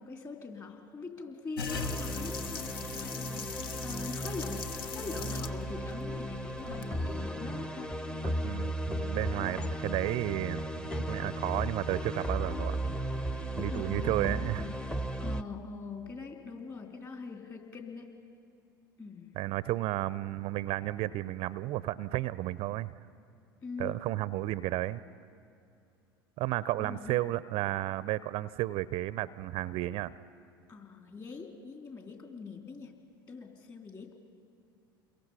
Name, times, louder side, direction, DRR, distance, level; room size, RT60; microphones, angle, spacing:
voice 1, 0.0-8.0 13.7-14.7 15.2-18.1 19.0-19.4 23.6-24.1 26.8-27.2 30.7-32.9 33.3-34.1, left 4 dB, 30° left, 3 dB, 3.4 m, -43 dB
sound 1, 1.6-7.2, left 5 dB, 70° left, 1.0 m, -40 dB
sound 2, 1.7-15.4, right 1 dB, 5° left, 0.8 m, -35 dB
voice 2, 8.2-12.8 13.6-14.6 19.4-22.9 23.8-25.0 26.4-30.1, right 16 dB, 50° right, 18 dB, 0.5 m, -33 dB
29.0 x 22.5 x 5.6 m, 2.5 s
hypercardioid pair, 75°, 12 cm